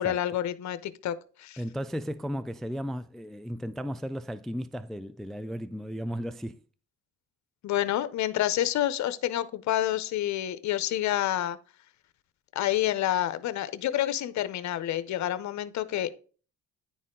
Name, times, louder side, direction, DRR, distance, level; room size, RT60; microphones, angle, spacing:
voice 1, 0.0-1.6 7.6-11.6 12.5-16.1, left 12 dB, 65° left, 0.7 m, -28 dB
voice 2, 1.6-6.6, equal, ahead, 0.3 m, -35 dB
10.0 x 4.2 x 3.7 m
cardioid pair, 90°, 30 cm